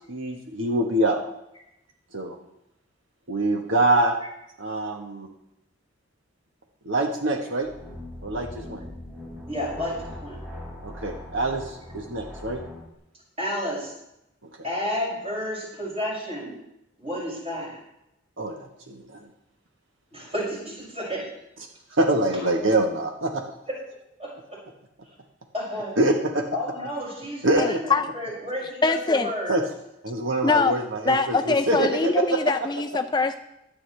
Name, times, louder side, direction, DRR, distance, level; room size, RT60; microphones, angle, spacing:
voice 1, 0.1-1.2 2.1-2.4 3.3-4.2 4.6-5.3 6.8-7.7 8.2-8.8 10.8-12.6 18.4-19.2 21.9-23.4 26.0-26.4 27.4-27.8 29.5-29.6 30.0-32.4, right 2 dB, 75° right, 2 dB, 1.2 m, -25 dB
sound 1, 7.6-12.9, left 1 dB, 10° right, 4.4 m, -40 dB
voice 2, 9.5-10.4 13.4-13.9 14.6-16.5 17.0-17.8 20.1-21.3 22.3-22.4 24.2-24.3 25.5-26.0 26.5-29.6, left 1 dB, 30° right, -5 dB, 6.2 m, -31 dB
voice 3, 27.6-28.0 28.8-29.3 30.4-30.7 31.1-33.4, left 3 dB, 20° left, 7 dB, 0.4 m, -23 dB
23.0 x 8.7 x 3.3 m, 0.83 s
head